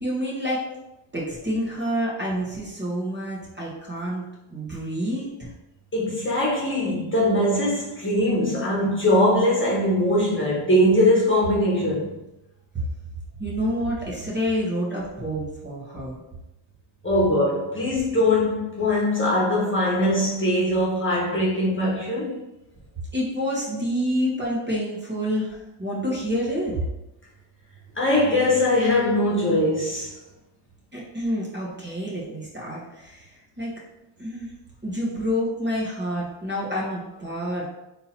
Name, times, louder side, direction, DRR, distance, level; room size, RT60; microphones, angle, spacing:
voice 1, 0.0-0.6 1.1-4.2 4.5-5.5 12.7-12.9 13.4-16.2 23.1-26.8 30.9-33.3 33.6-33.7 34.2-34.5 34.8-37.7, equal, 20° right, 1.2 m, -28 dB
voice 2, 5.9-12.1 17.0-22.4 27.9-30.1, left 1 dB, 25° left, 1.2 m, -21 dB
3.7 x 2.8 x 4.3 m
wide cardioid pair, 105°, 50 cm